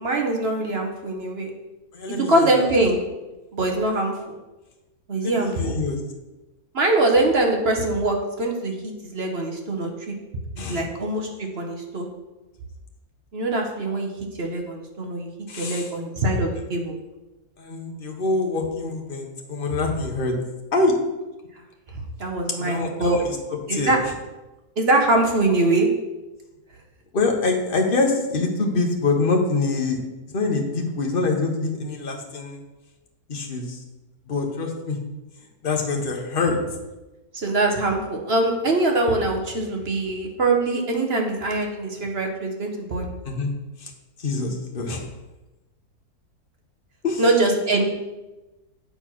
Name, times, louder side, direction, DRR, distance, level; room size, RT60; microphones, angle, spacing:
voice 1, 0.0-1.5 2.2-3.0 3.5-4.4 5.1-5.7 6.7-10.1 10.6-12.1 13.3-14.1 14.4-15.3 15.6-17.0 22.2-23.2 23.7-24.0 24.8-25.9 37.3-43.1 47.2-47.8, right 2 dB, 45° right, 2 dB, 1.1 m, -23 dB
voice 2, 1.9-2.5 5.2-6.0 10.6-10.8 15.5-15.9 17.6-20.3 20.7-20.9 22.6-23.9 27.1-30.0 30.3-32.6 33.3-33.8 34.3-35.0 35.6-36.6 43.2-43.5 43.8-43.9 44.2-45.1 47.0-47.6, left 3 dB, 35° left, 2 dB, 1.2 m, -25 dB
8.3 x 4.4 x 6.0 m, 1.1 s
omnidirectional pair, 1.7 m